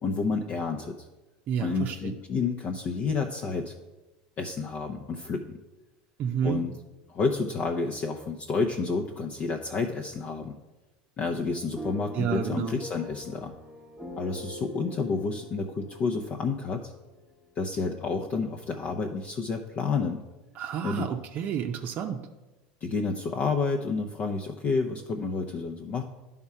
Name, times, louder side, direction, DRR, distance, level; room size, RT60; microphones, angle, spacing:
voice 1, 0.0-1.1 1.6-3.8 4.4-5.5 6.4-6.7 7.1-10.6 11.2-13.5 14.2-16.9 17.6-20.2 20.8-21.1 22.8-26.0, left 4 dB, 45° left, 2 dB, 0.7 m, -30 dB
voice 2, 1.5-2.1 6.2-6.6 12.1-12.8 20.6-22.2, right 8 dB, 50° right, 4 dB, 0.6 m, -30 dB
sound 1, 11.8-17.8, equal, ahead, 0.9 m, -44 dB
10.5 x 3.6 x 5.5 m, 1.1 s
supercardioid pair, 110°, 4 cm